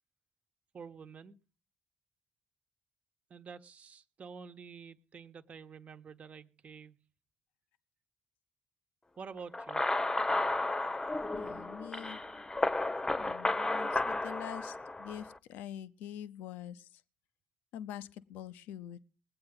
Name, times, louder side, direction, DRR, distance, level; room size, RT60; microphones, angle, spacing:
voice 1, 0.7-1.4 3.3-7.0 9.2-9.8, right 5 dB, 50° right, 1.1 m, -48 dB
sound 1, 9.5-15.3, left 2 dB, 20° left, 0.8 m, -33 dB
voice 2, 11.4-12.2 13.2-17.0 17.7-19.0, left 10 dB, 75° left, 0.6 m, -45 dB
21.0 x 8.6 x 3.9 m
hypercardioid pair, 45°, 3 cm